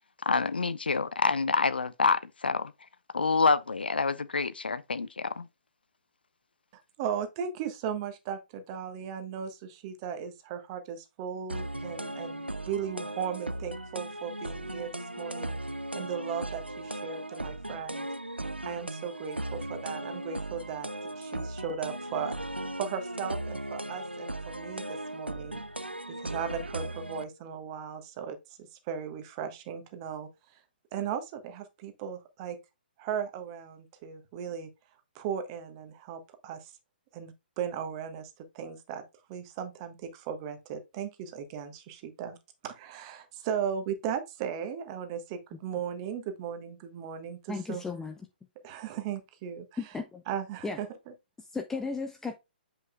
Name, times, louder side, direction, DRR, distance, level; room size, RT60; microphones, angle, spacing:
voice 1, 0.3-2.7 3.1-5.5, left 4 dB, 70° left, 0.6 m, -27 dB
voice 2, 7.0-15.5 15.9-18.1 18.6-22.4 22.8-25.6 26.1-30.3 30.9-32.6 33.0-34.7 35.1-36.7 37.1-38.3 38.5-39.0 39.3-42.4 42.6-47.8 48.6-49.7 50.3-50.9, right 8 dB, 30° right, 1.3 m, -37 dB
sound 1, 11.5-27.2, right 1 dB, 90° right, 0.5 m, -37 dB
voice 3, 47.5-48.2 49.8-50.2 50.6-50.8 51.4-52.4, left 4 dB, 5° left, 0.5 m, -35 dB
7.5 x 5.5 x 2.3 m
figure-of-eight pair, 125°, 6 cm